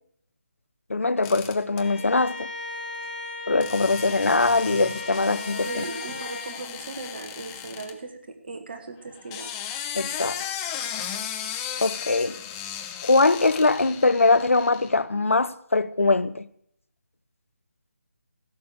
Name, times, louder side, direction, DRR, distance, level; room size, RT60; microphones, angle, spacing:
voice 1, 0.9-2.5 3.5-5.8 9.9-10.4 11.8-12.3 13.0-16.5, left 3 dB, 70° left, 0.7 m, -22 dB
sound 1, 1.2-1.8 3.6-7.9 9.1-14.9, left 9 dB, 15° left, 0.9 m, -36 dB
Bowed string instrument, 1.8-6.6, left 2 dB, 40° left, 2.2 m, -36 dB
voice 2, 5.7-9.5, right 3 dB, 45° right, 1.7 m, -38 dB
16.0 x 6.8 x 8.2 m
figure-of-eight pair, 155°, 8 cm